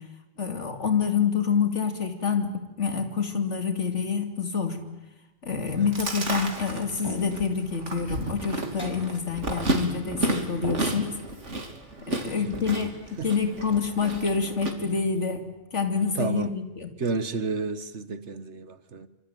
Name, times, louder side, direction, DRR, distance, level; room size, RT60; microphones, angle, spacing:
voice 1, 0.4-4.8 5.4-11.1 12.1-15.5 15.7-16.9, left 6 dB, 80° left, 3.0 m, -27 dB
Chewing mastication, 5.7-14.7, right 2 dB, 90° right, 3.2 m, -32 dB
sound 1, 7.0-7.6 8.8-9.2 10.6-11.3, equal, 20° left, 5.2 m, -36 dB
voice 2, 12.2-12.9 13.2-13.3 16.1-16.5 17.0-19.1, right 4 dB, 70° right, 1.6 m, -32 dB
25.5 x 25.0 x 9.2 m
omnidirectional pair, 1.2 m